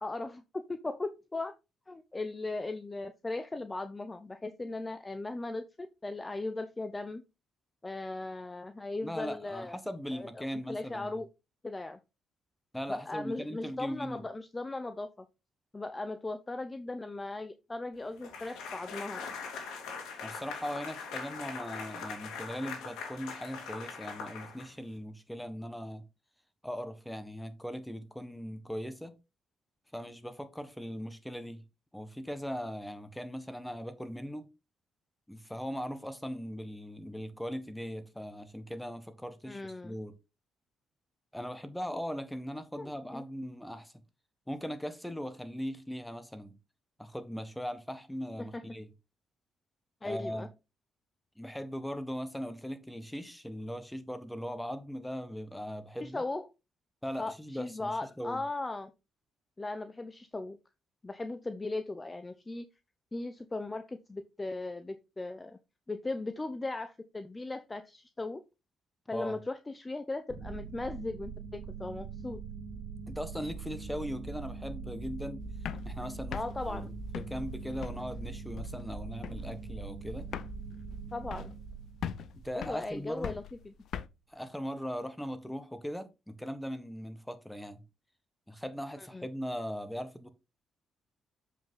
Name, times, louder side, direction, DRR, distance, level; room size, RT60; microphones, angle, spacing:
voice 1, 0.0-1.5 1.9-7.2 7.8-9.8 10.1-11.3 11.6-12.0 12.9-15.3 15.7-19.3 39.5-39.9 42.7-43.2 48.4-48.6 50.0-50.5 56.0-56.5 57.2-58.9 59.6-60.6 61.0-62.6 63.1-65.6 65.9-68.4 69.1-72.4 76.3-76.9 81.1-81.5 82.5-83.7 89.0-89.3, left 2 dB, 20° left, 0.7 m, -38 dB
voice 2, 9.0-11.1 12.7-14.2 20.2-26.0 26.6-29.1 29.9-31.6 31.9-34.5 35.3-40.1 41.3-43.9 44.5-46.5 47.0-48.8 50.0-50.5 51.4-56.2 57.0-58.4 69.1-69.4 73.1-75.4 75.8-76.4 76.7-80.3 82.4-83.3 84.3-87.8 88.5-90.3, equal, 5° left, 1.3 m, -39 dB
sound 1, 18.2-25.0, left 5 dB, 85° left, 2.5 m, -42 dB
sound 2, 70.3-83.2, right 4 dB, 45° right, 2.0 m, -42 dB
sound 3, 75.5-78.2 78.6-79.0 79.2-79.6 79.9-80.0 80.2-81.7 82.0-84.1, left 9 dB, 70° left, 0.6 m, -41 dB
7.3 x 5.6 x 3.8 m
cardioid pair, 90°, 0 cm